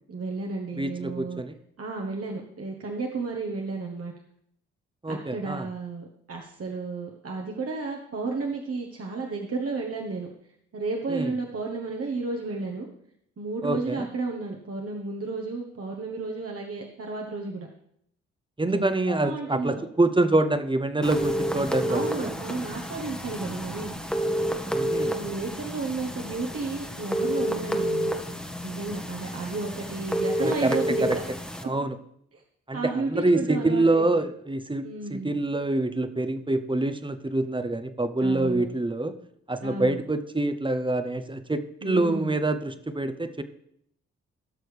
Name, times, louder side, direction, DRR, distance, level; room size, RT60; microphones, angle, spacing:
voice 1, 0.1-1.4 1.8-4.1 5.1-10.3 10.7-12.9 13.4-17.7 18.7-19.8 21.9-23.9 25.2-28.1 28.6-31.1 32.3-32.4 32.7-34.0 34.8-35.4 38.2-38.6 39.6-40.0 41.8-42.4, right 3 dB, 45° right, 0 dB, 1.4 m, -32 dB
voice 2, 0.8-1.5 5.0-5.7 11.1-11.3 13.6-14.1 18.6-22.3 24.7-25.1 30.4-30.8 31.6-31.9 32.7-39.1 39.5-43.4, right 2 dB, 15° right, 10 dB, 1.0 m, -26 dB
sound 1, 21.0-31.6, right 1 dB, 5° left, 1.3 m, -30 dB
16.5 x 6.2 x 3.4 m, 0.71 s
hypercardioid pair, 45°, 32 cm